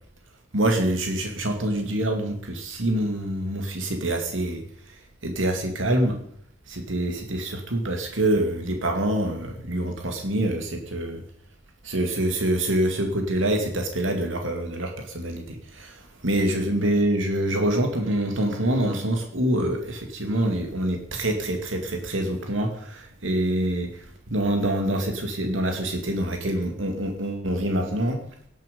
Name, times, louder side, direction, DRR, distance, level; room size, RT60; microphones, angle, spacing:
voice 1, 0.5-4.6 5.2-6.2 6.7-11.2 11.8-24.0 24.3-28.2, right 1 dB, 80° right, 3 dB, 2.5 m, -25 dB
18.0 x 10.5 x 5.4 m, 0.65 s
head